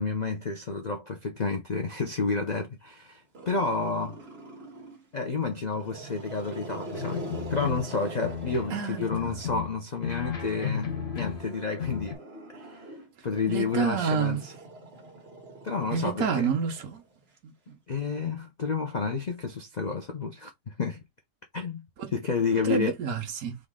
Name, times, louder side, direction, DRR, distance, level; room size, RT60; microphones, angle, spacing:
voice 1, 0.0-4.2 5.1-12.2 12.5-12.9 13.2-14.5 15.6-16.5 17.9-21.0 21.5-21.9 22.1-22.9, left 4 dB, 85° left, 0.3 m, -30 dB
Growling, 3.3-5.1 5.6-9.8 10.8-17.3, right 2 dB, 40° right, 1.6 m, -44 dB
sound 1, 6.9-7.9 8.2-8.8 9.1-11.5 11.8-12.1, left 7 dB, 45° left, 1.1 m, -34 dB
voice 2, 8.7-9.3 13.5-14.4 15.9-17.0 17.7-17.8 22.0-22.1 22.6-23.6, right 6 dB, 60° right, 1.3 m, -29 dB
3.9 x 3.1 x 3.6 m
omnidirectional pair, 1.8 m